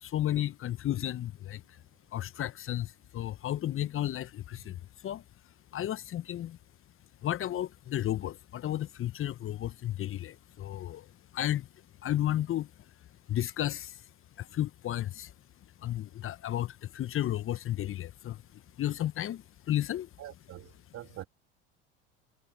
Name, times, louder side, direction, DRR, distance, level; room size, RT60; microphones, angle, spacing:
voice 1, 0.0-1.8 2.1-5.2 5.7-6.6 7.2-11.1 11.3-11.7 12.0-12.7 13.3-14.0 14.4-15.3 15.8-20.1, left 12 dB, 40° left, 1.1 m, -33 dB
voice 2, 20.2-21.3, right 14 dB, 45° right, 2.9 m, -45 dB
hypercardioid pair, 75°, 34 cm